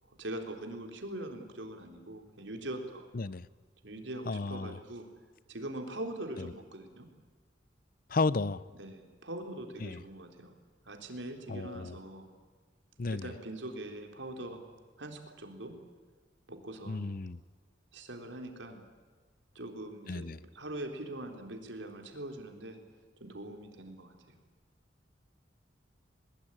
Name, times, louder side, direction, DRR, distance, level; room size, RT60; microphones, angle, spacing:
voice 1, 0.0-3.1 3.8-5.1 5.5-7.1 8.8-10.6 10.8-12.3 13.1-14.6 15.0-15.8 16.5-17.1 17.9-18.8 19.5-22.8 23.2-24.4, right 1 dB, 80° right, 3.9 m, -42 dB
voice 2, 4.3-4.8 8.1-8.6 9.8-10.0 11.5-11.9 13.0-13.3 16.9-17.4 20.1-20.4, left 3 dB, 50° left, 0.6 m, -33 dB
22.0 x 21.0 x 10.0 m
head